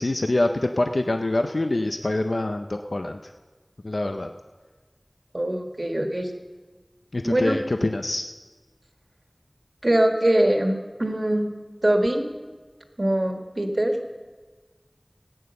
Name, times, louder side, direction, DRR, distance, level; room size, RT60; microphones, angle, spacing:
voice 1, 0.0-3.2 3.8-4.3 7.1-8.3, left 2 dB, 85° left, 6 dB, 0.5 m, -25 dB
voice 2, 5.3-6.3 7.2-7.5 9.8-10.7 11.0-11.5 11.8-12.2 13.0-13.9, right 1 dB, 55° right, 4 dB, 1.6 m, -22 dB
15.5 x 8.9 x 6.8 m, 1.3 s
wide cardioid pair, 40°, 0 cm